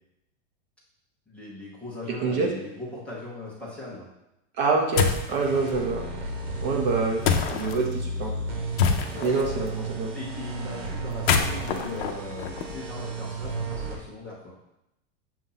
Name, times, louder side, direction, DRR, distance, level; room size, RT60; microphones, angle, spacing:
voice 1, 1.3-4.0 9.1-9.3 10.1-14.5, left 2 dB, 5° left, -7 dB, 0.9 m, -39 dB
voice 2, 4.6-6.0 6.6-7.2 7.5-8.3 9.2-10.1, right 4 dB, 40° right, 1 dB, 0.8 m, -26 dB
sound 1, 5.0-5.3 7.2-7.8 8.8-9.4 11.1-13.0, left 6 dB, 60° left, 0.7 m, -25 dB
sound 2, 5.4-14.0, right 3 dB, 60° right, 1.6 m, -34 dB
7.3 x 2.7 x 5.6 m, 0.87 s
supercardioid pair, 175°, 36 cm